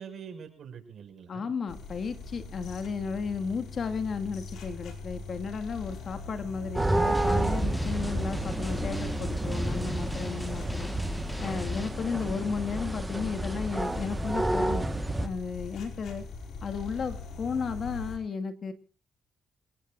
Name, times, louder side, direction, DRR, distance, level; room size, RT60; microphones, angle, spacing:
voice 1, 0.0-1.5 7.7-7.9 10.4-10.9, right 7 dB, 60° right, 7 dB, 5.9 m, -45 dB
voice 2, 1.3-10.9 11.4-14.9 15.2-16.3 16.6-18.7, left 5 dB, 50° left, 8 dB, 2.0 m, -34 dB
sound 1, 1.7-18.2, left 4 dB, 70° left, 5.0 m, -41 dB
sound 2, 6.8-15.3, right 1 dB, 10° right, 1.5 m, -30 dB
Drum, 7.1-11.9, equal, 5° left, 4.5 m, -42 dB
28.0 x 18.0 x 2.6 m, 0.36 s
cardioid pair, 90°, 0 cm